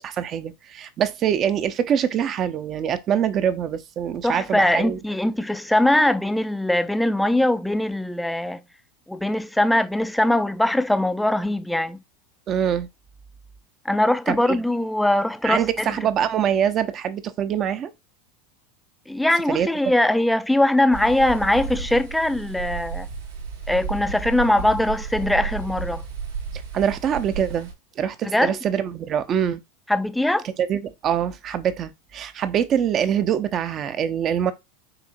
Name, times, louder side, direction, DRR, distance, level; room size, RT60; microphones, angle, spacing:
voice 1, 0.0-5.0 12.5-12.9 14.3-14.6 15.4-17.9 19.5-19.7 26.7-27.7 28.0-29.6 30.6-34.5, right 9 dB, 40° right, 0.6 m, -24 dB
voice 2, 4.2-8.6 9.1-12.0 13.9-15.9 19.1-23.1 23.7-26.0 28.2-28.6 29.9-30.5, left 1 dB, 5° left, 0.4 m, -21 dB
sound 1, 20.9-27.7, right 5 dB, 85° right, 2.9 m, -32 dB
6.6 x 2.8 x 2.6 m
hypercardioid pair, 95°, 0 cm